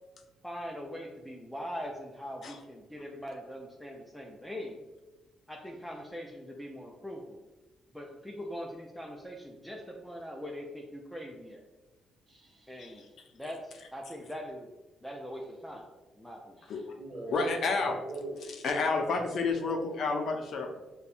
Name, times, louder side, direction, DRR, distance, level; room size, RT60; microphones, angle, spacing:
voice 1, 0.4-4.8 5.5-7.4 7.9-11.6 12.7-13.0 13.3-14.7 15.0-15.9 16.1-16.6, equal, 5° left, 0 dB, 0.4 m, -42 dB
voice 2, 12.3-13.1 16.6-18.7 19.0-20.0, right 1 dB, 40° right, -1 dB, 1.0 m, -43 dB
voice 3, 17.3-18.0 18.6-20.8, left 4 dB, 65° left, 3 dB, 0.5 m, -30 dB
5.2 x 2.2 x 2.4 m, 1.1 s
cardioid pair, 90°, 0 cm